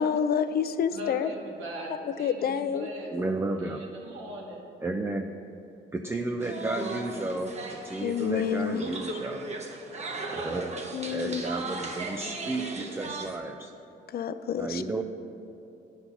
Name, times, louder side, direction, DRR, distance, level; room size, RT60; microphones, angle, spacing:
voice 1, 0.0-1.3 2.2-2.9 8.0-8.8 10.9-11.4 14.1-14.8, left 7 dB, 50° left, 12 dB, 0.4 m, -28 dB
voice 2, 0.9-3.2 3.5-4.6 6.1-6.2 9.8-10.7, equal, 85° right, -1 dB, 1.6 m, -41 dB
voice 3, 3.1-3.8 4.8-5.3 5.9-9.5 10.3-10.7 11.0-13.7 14.5-15.0, right 2 dB, 10° right, 4 dB, 0.4 m, -33 dB
sound 1, 6.4-13.4, right 2 dB, 35° right, 1.0 m, -37 dB
9.6 x 4.1 x 5.7 m, 2.8 s
cardioid pair, 90°, 20 cm